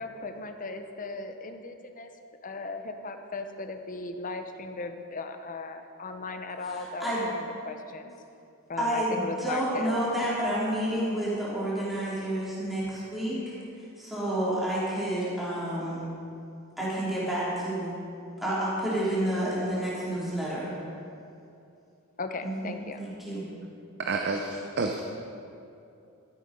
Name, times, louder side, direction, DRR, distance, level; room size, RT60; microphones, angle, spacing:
voice 1, 0.0-2.1 2.4-8.1 8.7-10.0 22.2-23.0, left 3 dB, 35° left, 7 dB, 0.8 m, -37 dB
voice 2, 6.6-7.2 8.8-13.5 14.0-16.0 16.8-17.9 18.4-20.7 22.4-23.4, right 1 dB, ahead, -10 dB, 3.4 m, -30 dB
voice 3, 24.0-25.0, right 3 dB, 50° right, 3 dB, 0.7 m, -29 dB
13.5 x 8.4 x 5.3 m, 2.6 s
head